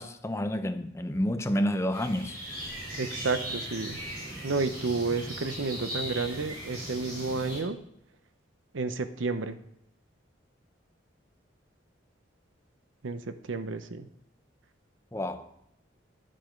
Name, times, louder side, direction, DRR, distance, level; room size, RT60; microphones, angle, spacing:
voice 1, 0.0-2.4 15.1-15.5, equal, 15° left, 0.5 m, -29 dB
sound 1, 1.9-7.6, equal, 50° right, 4.8 m, -38 dB
voice 2, 3.0-4.0 4.4-7.8 8.7-9.6 13.0-14.1, right 3 dB, 80° right, 0.7 m, -31 dB
11.0 x 7.6 x 5.2 m
head